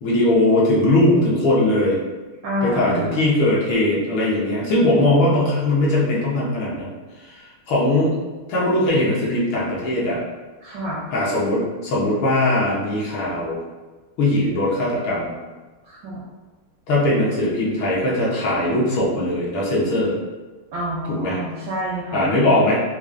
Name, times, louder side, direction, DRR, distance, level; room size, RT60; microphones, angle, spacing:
voice 1, 0.0-2.0 2.6-6.9 7.2-7.4 7.7-8.1 8.5-10.2 11.1-13.6 14.2-15.3 16.9-20.1 21.1-21.4 22.1-22.8, left 1 dB, 70° left, -5 dB, 1.7 m, -20 dB
voice 2, 2.4-3.3 10.6-11.1 15.8-16.2 20.7-22.3, equal, 75° right, -5 dB, 1.0 m, -28 dB
4.7 x 2.5 x 2.4 m, 1.3 s
omnidirectional pair, 2.4 m